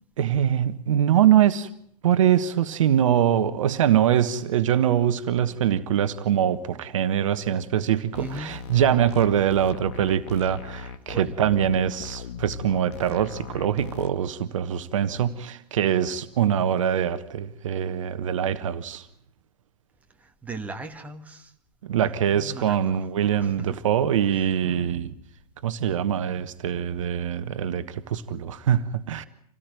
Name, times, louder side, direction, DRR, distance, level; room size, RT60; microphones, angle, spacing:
voice 1, 0.2-1.7 2.0-19.1 21.8-25.1 25.6-29.3, right 10 dB, 50° right, 1.3 m, -23 dB
sound 1, 8.1-14.1, left 6 dB, 45° left, 1.9 m, -39 dB
voice 2, 8.2-8.6 11.1-11.3 20.2-21.5 22.0-23.8 24.3-24.4, right 3 dB, 5° right, 1.8 m, -38 dB
27.0 x 18.0 x 9.1 m
figure-of-eight pair, 110°, 21 cm